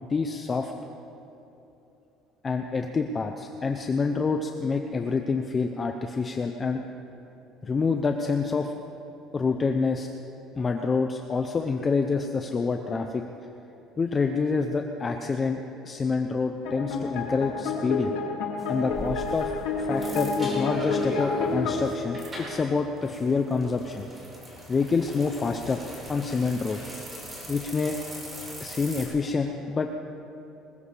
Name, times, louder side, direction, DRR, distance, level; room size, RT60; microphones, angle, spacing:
voice 1, 0.1-0.7 2.4-6.8 7.6-8.7 9.3-10.1 10.6-13.2 14.0-18.1 18.7-19.5 19.8-24.1 24.7-25.8 26.1-26.8 27.5-28.0 28.6-29.9, left 4 dB, 20° left, 5 dB, 0.5 m, -27 dB
sound 1, 16.6-21.8, left 4 dB, 80° left, 2.3 m, -29 dB
sound 2, 18.6-29.1, equal, 15° right, 3.5 m, -40 dB
20.5 x 20.0 x 3.4 m, 2.9 s
cardioid pair, 175°, 0 cm